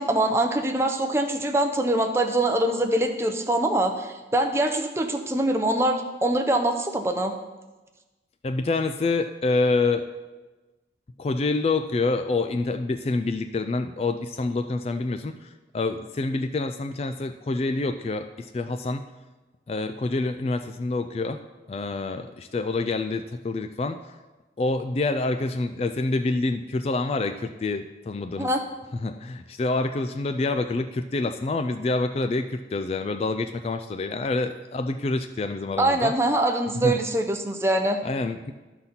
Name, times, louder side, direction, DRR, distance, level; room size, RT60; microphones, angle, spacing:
voice 1, 0.0-7.3 28.4-28.6 35.8-38.0, right 1 dB, 15° right, 4 dB, 0.6 m, -24 dB
voice 2, 8.4-10.1 11.2-15.3 15.7-19.0 19.7-21.4 21.7-24.0 24.6-28.5 29.0-36.1 36.8-37.0 38.0-38.5, left 3 dB, 35° left, 9 dB, 0.3 m, -27 dB
12.0 x 4.0 x 5.8 m, 1.2 s
head